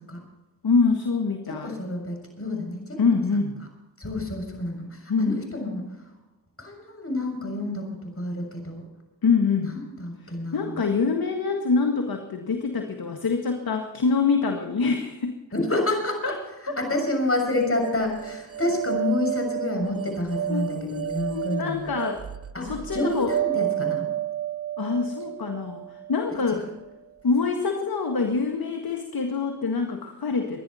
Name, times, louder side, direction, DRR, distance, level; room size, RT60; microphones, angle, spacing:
voice 1, 0.6-1.7 3.0-3.6 5.1-5.4 9.2-9.8 10.5-15.4 16.2-16.4 16.7-16.8 20.5-22.3 22.6-23.3 24.8-26.7 27.2-30.6, left 4 dB, 50° left, 4 dB, 1.8 m, -25 dB
voice 2, 1.5-3.2 4.0-5.9 6.6-7.9 8.2-8.8 9.6-10.9 15.5-16.3 16.8-22.0 22.5-24.1, left 2 dB, 30° left, 3 dB, 6.8 m, -29 dB
sound 1, 17.5-26.6, right 11 dB, 30° right, 0.8 m, -31 dB
24.0 x 10.5 x 4.3 m, 1.1 s
supercardioid pair, 45°, 47 cm